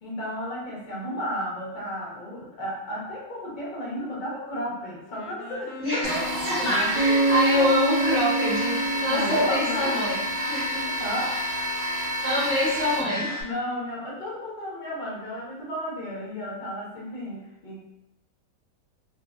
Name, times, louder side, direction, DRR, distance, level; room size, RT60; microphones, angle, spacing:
voice 1, 0.0-6.9 7.5-7.6 8.9-10.0 10.7-11.7 13.4-17.8, equal, 45° left, -5 dB, 0.6 m, -33 dB
Wind instrument woodwind instrument, 5.1-10.3, equal, 80° left, 1.2 m, -42 dB
voice 2, 5.8-10.2 10.5-10.9 11.8-13.3, left 1 dB, 10° right, -10 dB, 0.6 m, -26 dB
sound 1, 6.0-13.4, equal, 70° right, 0.5 m, -29 dB
Bass guitar, 6.9-10.6, right 2 dB, 55° right, 0.9 m, -26 dB
2.6 x 2.6 x 2.4 m, 0.89 s
omnidirectional pair, 1.9 m